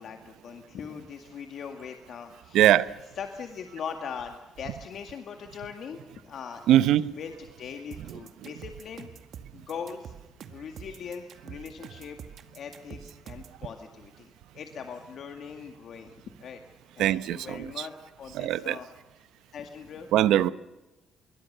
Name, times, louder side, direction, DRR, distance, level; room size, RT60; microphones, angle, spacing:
voice 1, 0.0-2.6 3.2-6.8 7.2-9.1 9.5-10.1 10.5-12.2 12.5-16.6 16.9-17.9 18.2-18.9 19.5-20.1, left 6 dB, 50° left, 2.0 m, -40 dB
voice 2, 2.5-2.9 6.7-7.1 8.1-8.5 17.0-17.9 18.3-18.8 20.1-20.5, right 12 dB, 85° right, 0.9 m, -22 dB
sound 1, 7.9-13.6, right 8 dB, 55° right, 2.0 m, -45 dB
26.5 x 22.5 x 6.8 m
cardioid pair, 160°, 0 cm